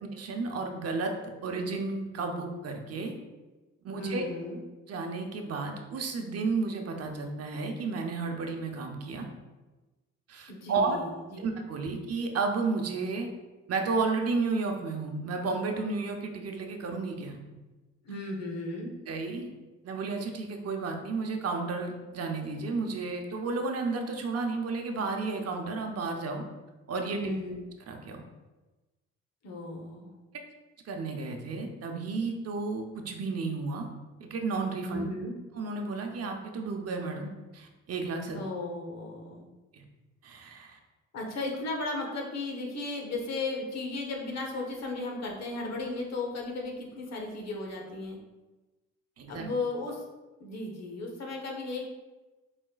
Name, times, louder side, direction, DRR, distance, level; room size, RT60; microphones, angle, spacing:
voice 1, 0.0-1.1 1.4-3.2 3.8-4.3 4.9-9.3 10.3-11.0 11.4-13.3 13.7-17.4 19.1-19.5 19.8-26.4 26.9-27.3 27.9-28.2 30.9-33.9 34.2-35.1 35.5-38.4 39.7-39.8 40.2-40.8 49.2-49.5, right 4 dB, 55° right, 3 dB, 0.8 m, -32 dB
voice 2, 4.0-4.6 10.5-11.5 18.0-18.9 27.2-27.6 29.4-30.1 34.9-35.3 38.3-39.4 41.1-48.2 49.3-50.1 50.4-51.8, left 2 dB, 60° left, 0 dB, 1.2 m, -35 dB
6.3 x 3.5 x 2.4 m, 1.2 s
cardioid pair, 90°, 30 cm